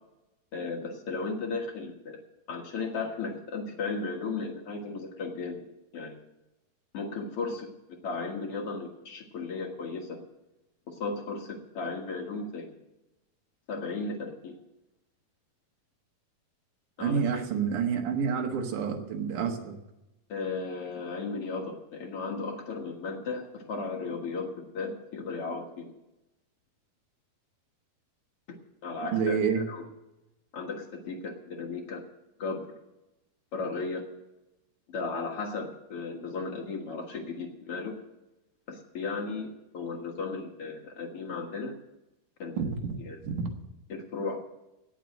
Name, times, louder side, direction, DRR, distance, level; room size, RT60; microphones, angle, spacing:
voice 1, 0.5-2.2 2.5-5.6 5.9-6.2 6.9-7.7 8.0-10.2 10.9-12.7 13.7-14.5 17.0-17.4 20.3-26.0 28.8-29.8 30.5-32.0 32.4-32.7 33.5-34.1 34.9-38.0 38.7-41.7 42.4-42.6 43.0-43.2 43.9-44.4, left 4 dB, 55° left, 2 dB, 1.8 m, -35 dB
voice 2, 17.0-19.8 29.1-29.6 42.6-43.0 43.2-43.5, right 6 dB, 65° right, 3 dB, 2.7 m, -28 dB
17.0 x 6.3 x 7.6 m, 0.97 s
omnidirectional pair, 4.3 m